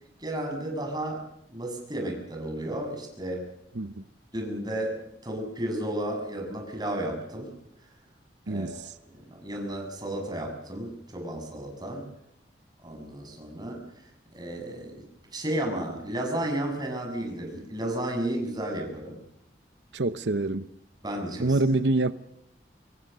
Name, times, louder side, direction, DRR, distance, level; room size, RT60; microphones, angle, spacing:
voice 1, 0.2-1.2 1.5-3.4 4.3-5.0 5.2-7.5 8.5-8.8 9.1-12.1 12.8-14.0 14.3-15.0 15.3-19.2 21.0-21.6, right 1 dB, 25° right, 7.4 m, -33 dB
voice 2, 8.5-9.0 19.9-20.7 21.4-22.1, right 2 dB, 85° right, 0.8 m, -26 dB
26.5 x 22.0 x 6.8 m
head